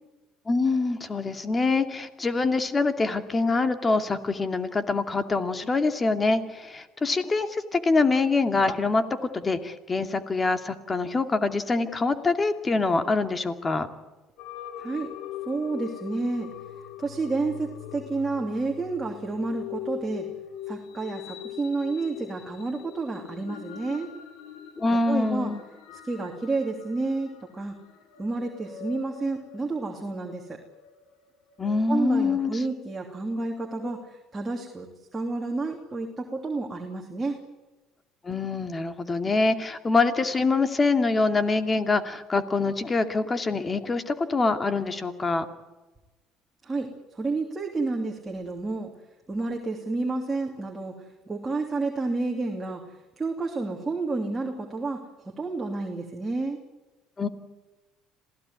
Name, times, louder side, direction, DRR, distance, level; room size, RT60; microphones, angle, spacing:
voice 1, 0.5-13.9 24.8-25.6 31.6-32.5 38.2-45.5 57.2-57.3, left 3 dB, 25° left, 9 dB, 2.4 m, -25 dB
sound 1, 14.4-33.9, left 10 dB, 75° left, 3.8 m, -42 dB
voice 2, 14.8-15.1 15.4-16.5 17.0-20.3 20.7-24.1 24.9-25.5 26.0-27.7 28.2-30.6 31.9-34.9 35.1-37.4 46.6-48.9 49.3-56.6, right 3 dB, 20° right, 1 dB, 3.0 m, -30 dB
27.0 x 16.5 x 9.7 m, 1.1 s
supercardioid pair, 105°, 0 cm